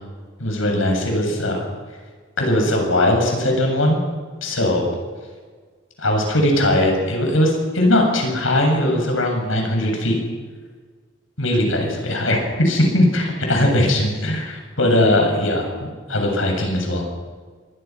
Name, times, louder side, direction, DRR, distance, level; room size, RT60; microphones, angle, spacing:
voice 1, 0.4-1.7 2.4-4.0 4.4-4.9 6.0-10.2 11.4-17.0, left 1 dB, 80° left, 1 dB, 7.8 m, -19 dB
25.5 x 22.5 x 6.2 m, 1.5 s
head